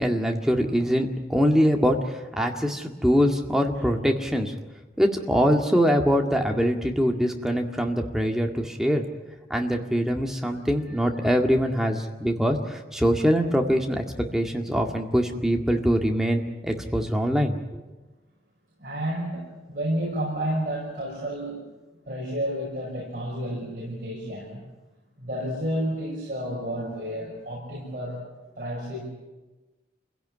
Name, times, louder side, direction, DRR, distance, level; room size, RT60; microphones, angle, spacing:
voice 1, 0.0-4.5 5.0-9.0 9.5-17.6, equal, ahead, 2 dB, 1.9 m, -23 dB
voice 2, 18.8-21.6 22.0-24.6 25.2-28.2 28.6-29.0, equal, 45° right, -4 dB, 6.2 m, -31 dB
27.0 x 17.0 x 9.8 m, 1.2 s
head